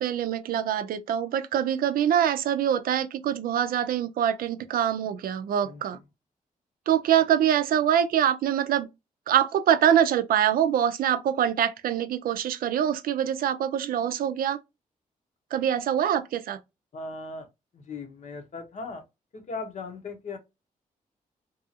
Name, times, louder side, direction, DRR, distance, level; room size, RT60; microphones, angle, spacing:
voice 1, 0.0-6.0 6.9-8.9 9.3-14.6 15.5-16.6, right 10 dB, 85° right, 0.4 m, -24 dB
voice 2, 16.9-17.5 17.7-19.0 19.3-20.4, left 3 dB, 55° left, 0.8 m, -38 dB
2.7 x 2.4 x 2.7 m
wide cardioid pair, 125°, 15 cm